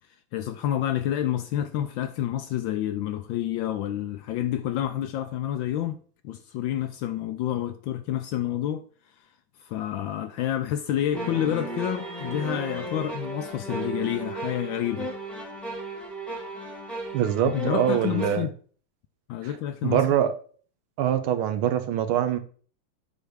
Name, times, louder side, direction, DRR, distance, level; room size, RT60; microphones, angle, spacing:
voice 1, 0.3-6.0 6.2-8.9 9.6-15.1 17.4-18.5 19.3-20.0, left 11 dB, 75° left, 1.1 m, -29 dB
sound 1, 11.1-18.4, right 2 dB, ahead, 1.4 m, -35 dB
voice 2, 17.1-18.5 19.4-19.5 19.8-20.3 21.0-22.4, right 10 dB, 75° right, 1.6 m, -24 dB
8.0 x 3.4 x 6.4 m
omnidirectional pair, 2.4 m